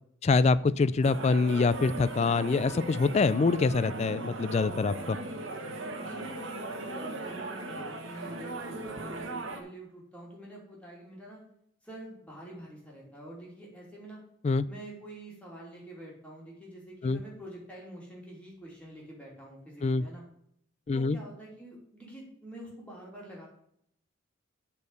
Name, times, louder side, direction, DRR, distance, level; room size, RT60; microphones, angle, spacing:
voice 1, 0.2-5.2 14.4-14.7 17.0-17.2 19.8-20.0 20.9-21.2, left 4 dB, 35° left, 17 dB, 0.3 m, -25 dB
sound 1, 1.0-9.6, right 2 dB, 75° right, 1.4 m, -38 dB
voice 2, 6.0-11.4 11.8-14.2 14.7-20.2 20.9-23.5, right 1 dB, 5° left, -4 dB, 3.0 m, -46 dB
8.2 x 4.6 x 6.7 m, 0.71 s
head